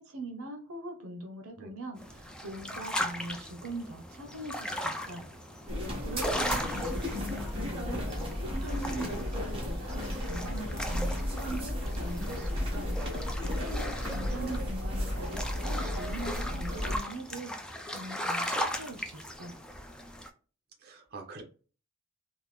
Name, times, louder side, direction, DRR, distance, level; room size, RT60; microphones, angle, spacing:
voice 1, 0.0-5.3 6.0-12.9 13.7-19.6, right 2 dB, 75° right, 4 dB, 0.6 m, -42 dB
sound 1, 2.0-20.3, equal, 5° left, 0.3 m, -38 dB
voice 2, 4.7-5.3 6.4-6.7 8.9-9.2 13.7-14.4 20.8-21.4, right 2 dB, 45° right, 2 dB, 0.8 m, -47 dB
sound 2, 5.7-17.0, left 1 dB, 25° right, 1.2 m, -34 dB
3.6 x 2.0 x 3.1 m, 0.37 s
head